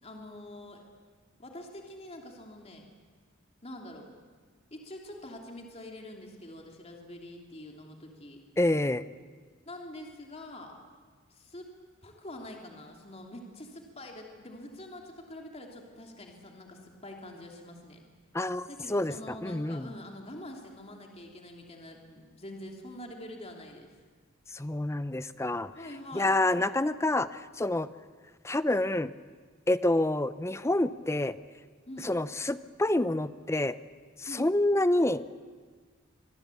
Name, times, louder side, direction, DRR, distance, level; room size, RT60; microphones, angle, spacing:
voice 1, 0.0-0.8 1.4-2.9 3.6-4.1 4.7-8.4 9.6-10.8 11.3-11.7 12.0-18.0 18.7-23.9 25.7-26.3 31.9-32.1 34.3-34.5, left 1 dB, 30° left, 1 dB, 2.9 m, -45 dB
voice 2, 8.6-9.0 18.3-19.1 19.4-19.9 24.5-25.7 26.1-27.3 27.6-27.9 28.4-29.1 29.7-31.4 32.0-33.7 34.4-35.2, left 1 dB, 15° left, 14 dB, 0.6 m, -27 dB
25.0 x 21.0 x 8.4 m, 1.5 s
head